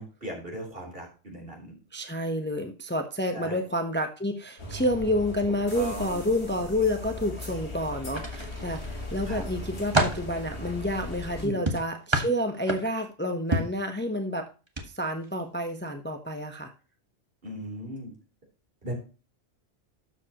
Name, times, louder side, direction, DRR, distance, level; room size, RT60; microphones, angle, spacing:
voice 1, 0.0-1.7 3.3-3.6 5.7-6.3 9.3-9.4 11.4-11.6 17.4-18.1 18.8-18.9, right 1 dB, 55° right, 0 dB, 3.9 m, -37 dB
voice 2, 1.9-14.5 14.9-16.7, left 1 dB, 10° left, 5 dB, 0.9 m, -29 dB
sound 1, 4.6-11.5, left 1 dB, 70° left, 3.1 m, -38 dB
sound 2, 8.1-8.9 9.4-10.3 11.7-13.1 13.5-13.8 14.7-14.9 15.2-15.4, right 1 dB, 25° right, 1.4 m, -28 dB
12.5 x 7.3 x 3.0 m, 0.32 s
omnidirectional pair, 1.2 m